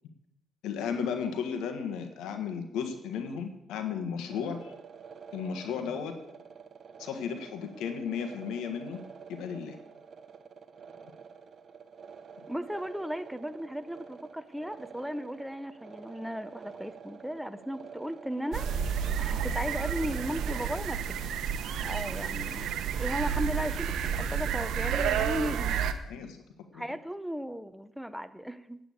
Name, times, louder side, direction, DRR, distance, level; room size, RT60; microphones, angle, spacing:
voice 1, 0.6-4.7 5.3-6.1 7.0-9.0 9.3-9.8 21.8-22.1 26.1-26.4 26.7-26.8, left 7 dB, 90° left, 6 dB, 1.5 m, -34 dB
sound 1, 4.3-20.8, right 6 dB, 50° right, 1.2 m, -49 dB
voice 2, 12.5-18.8 19.2-21.2 21.8-22.7 22.9-25.8 26.7-28.8, equal, ahead, 11 dB, 0.8 m, -36 dB
sound 2, 18.5-25.9, right 8 dB, 80° right, 0.9 m, -30 dB
9.0 x 8.7 x 8.5 m, 0.86 s
cardioid pair, 90°, 0 cm